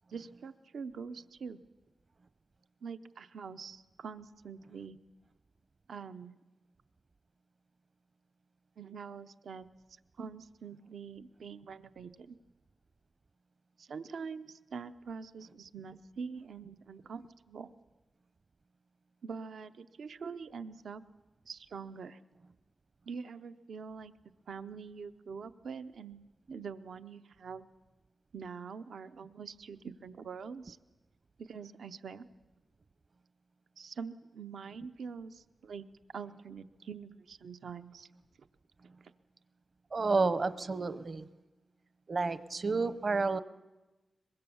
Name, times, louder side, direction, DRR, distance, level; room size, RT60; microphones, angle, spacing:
voice 1, 0.1-1.6 2.8-5.0 5.9-6.3 8.8-9.7 10.2-12.4 13.8-17.7 19.2-21.0 21.5-22.2 23.1-24.1 24.5-27.7 28.3-30.8 31.4-32.2 33.8-35.9 36.1-38.1, right 5 dB, 85° right, 10 dB, 0.7 m, -44 dB
voice 2, 39.9-41.3 42.1-43.4, right 3 dB, 45° right, 15 dB, 0.8 m, -30 dB
23.5 x 21.5 x 7.1 m, 1.1 s
wide cardioid pair, 95°, 0 cm